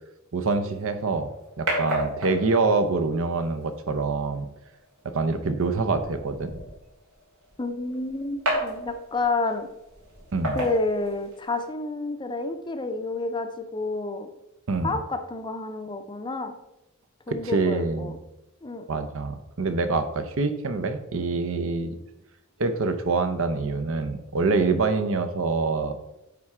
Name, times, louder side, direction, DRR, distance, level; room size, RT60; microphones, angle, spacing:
voice 1, 0.3-1.3 1.6-4.5 5.1-6.6 10.3-10.6 14.7-15.0 17.4-18.2 18.9-21.9 22.6-26.0, right 3 dB, 65° right, 9 dB, 0.7 m, -25 dB
sound 1, 0.7-11.7, equal, 85° right, 2.7 m, -35 dB
voice 2, 7.6-9.7 10.5-14.3 14.8-16.5 17.3-18.1 18.6-18.8, left 3 dB, 20° left, 7 dB, 0.5 m, -29 dB
9.3 x 3.6 x 4.3 m, 0.90 s
head